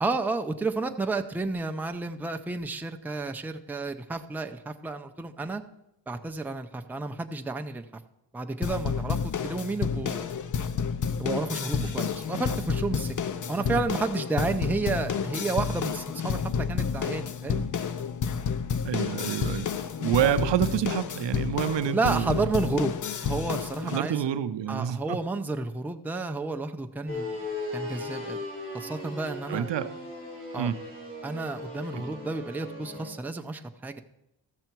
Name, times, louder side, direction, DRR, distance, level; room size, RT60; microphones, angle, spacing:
voice 1, 0.0-5.6 6.1-7.8 8.3-10.4 11.2-13.1 13.5-17.7 20.2-20.4 21.9-22.9 23.2-24.2 24.7-27.4 27.7-28.4 28.7-29.7 30.5-30.7 31.2-34.0, right 3 dB, 5° right, 6 dB, 0.5 m, -31 dB
sound 1, 8.6-24.0, left 6 dB, 45° left, 0.6 m, -30 dB
voice 2, 18.8-19.7 20.0-22.7 23.9-25.2 29.5-30.0 30.6-30.8 31.9-32.1, right 10 dB, 70° right, 12 dB, 0.6 m, -28 dB
sound 2, 27.1-33.1, left 2 dB, 25° left, 4.3 m, -37 dB
14.0 x 6.7 x 4.5 m, 0.86 s
wide cardioid pair, 120°, 45 cm